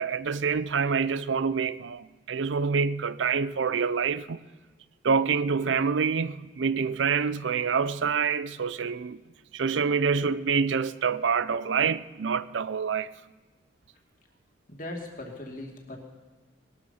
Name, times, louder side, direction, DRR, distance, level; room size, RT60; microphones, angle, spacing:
voice 1, 0.0-4.4 5.0-9.2 9.5-13.1, right 5 dB, 85° right, 0.5 m, -26 dB
voice 2, 14.7-16.0, left 1 dB, 45° left, 2.5 m, -39 dB
20.0 x 12.5 x 5.6 m
head